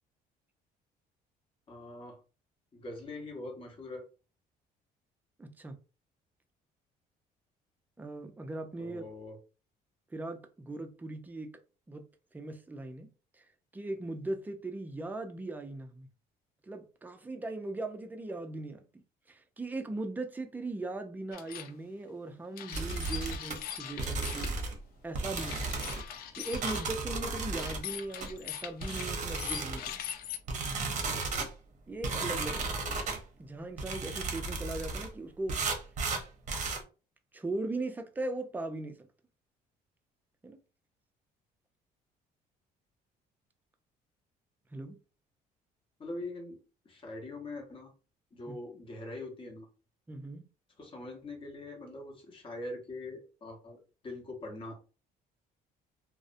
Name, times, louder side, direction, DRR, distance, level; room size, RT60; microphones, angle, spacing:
voice 1, 1.7-2.2 2.7-4.1 8.8-9.4 46.0-46.6 46.8-47.9 48.3-49.7 50.8-54.8, left 2 dB, 30° left, 0.9 m, -43 dB
voice 2, 5.4-5.8 8.0-9.0 10.1-11.5 11.9-12.1 12.3-13.1 13.4-13.5 13.7-16.1 16.6-18.8 19.3-24.6 25.0-25.6 25.9-30.0 31.0-31.2 31.9-33.0 33.4-35.6 37.3-39.0 40.4-40.6 44.7-45.0 48.5-48.6 50.1-50.5, right 2 dB, 10° right, 0.4 m, -39 dB
sound 1, 21.3-21.7 22.6-24.5 25.3-26.9 27.6-30.4, left 10 dB, 65° left, 0.4 m, -41 dB
sound 2, 22.7-23.6 24.0-24.8 25.1-26.0 26.5-27.8 28.2-28.3 28.8-29.9 30.5-31.5 32.0-33.2 33.8-35.1 35.5-36.8, right 3 dB, 45° right, 0.7 m, -34 dB
2.5 x 2.0 x 2.5 m
cardioid pair, 110°, 17 cm